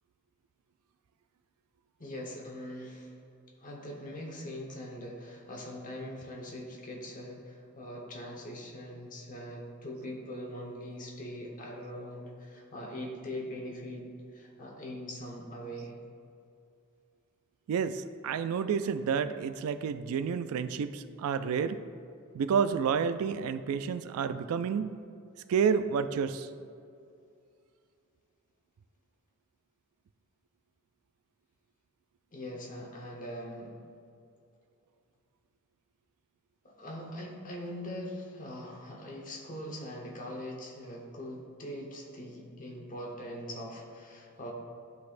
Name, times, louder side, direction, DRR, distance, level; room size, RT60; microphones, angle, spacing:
voice 1, 2.0-3.1 3.6-15.9 32.3-33.7 36.6-44.5, equal, 40° left, -1 dB, 1.1 m, -42 dB
voice 2, 17.7-21.8 22.3-24.9 25.5-26.5, right 6 dB, 70° right, 12 dB, 0.3 m, -30 dB
12.0 x 4.1 x 2.5 m, 2.4 s
head